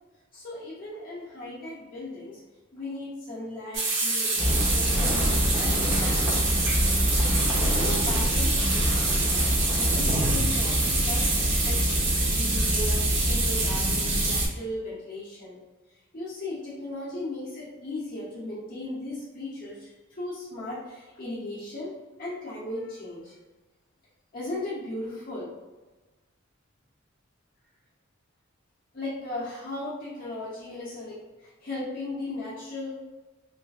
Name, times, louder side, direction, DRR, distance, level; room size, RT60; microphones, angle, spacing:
voice 1, 0.3-2.4 2.7-7.0 7.7-11.3 11.6-11.8 12.2-15.6 16.1-21.9 22.2-23.3 24.3-25.5 28.9-32.9, left 2 dB, 45° left, -9 dB, 0.7 m, -37 dB
sound 1, 3.7-14.5, right 3 dB, 65° right, 0.8 m, -27 dB
sound 2, 4.4-14.4, equal, 15° right, 0.7 m, -26 dB
3.2 x 2.4 x 2.4 m, 1.2 s
head